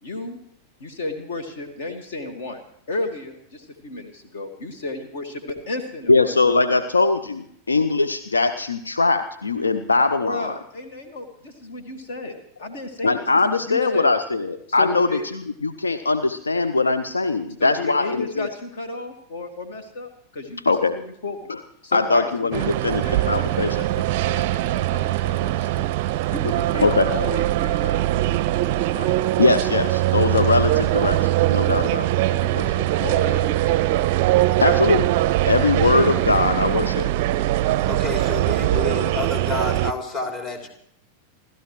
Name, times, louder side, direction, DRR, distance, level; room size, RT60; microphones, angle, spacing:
voice 1, 0.0-0.4 0.8-2.6 2.9-6.6 10.2-14.2 14.7-15.3 17.6-21.5 21.8-25.9 26.3-28.1 28.9-29.1 32.3-33.8 38.7-38.8, left 2 dB, 55° left, 7 dB, 1.8 m, -33 dB
voice 2, 6.1-10.5 13.0-18.5 20.7-21.0 21.5-21.6 21.9-23.8 26.8-27.1 29.4-32.1 34.6-35.1 35.5-37.1, left 3 dB, 75° left, 10 dB, 0.7 m, -21 dB
sound 1, 22.5-39.9, right 15 dB, 50° right, 0.5 m, -22 dB
voice 3, 37.9-40.7, left 3 dB, 30° left, 2 dB, 3.3 m, -29 dB
28.5 x 13.0 x 3.1 m, 0.70 s
figure-of-eight pair, 90°, 0 cm